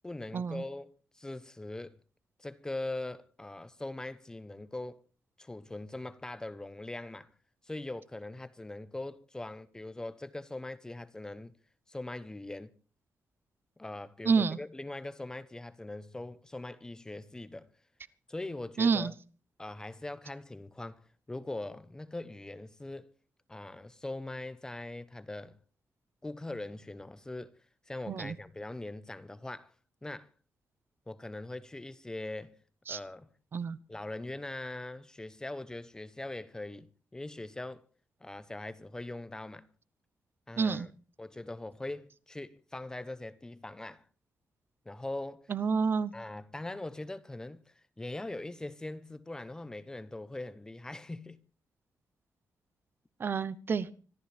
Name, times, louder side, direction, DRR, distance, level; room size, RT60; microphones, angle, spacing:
voice 1, 0.0-2.0 2.4-5.0 5.4-7.3 7.6-11.5 11.9-12.7 13.8-17.7 18.3-19.1 19.6-23.1 23.5-25.6 26.2-27.6 27.9-29.7 30.0-30.3 31.1-32.6 32.9-33.3 33.9-37.8 38.2-39.7 40.5-40.9 41.2-44.1 44.8-45.5 46.1-51.4, left 2 dB, 10° left, 0.9 m, -41 dB
voice 2, 14.2-14.6 18.8-19.1 28.1-28.3 32.9-33.0 33.5-33.8 40.6-40.9 45.5-46.1 53.2-53.9, right 5 dB, 40° right, 0.8 m, -28 dB
25.5 x 13.5 x 3.4 m
wide cardioid pair, 165°, 6 cm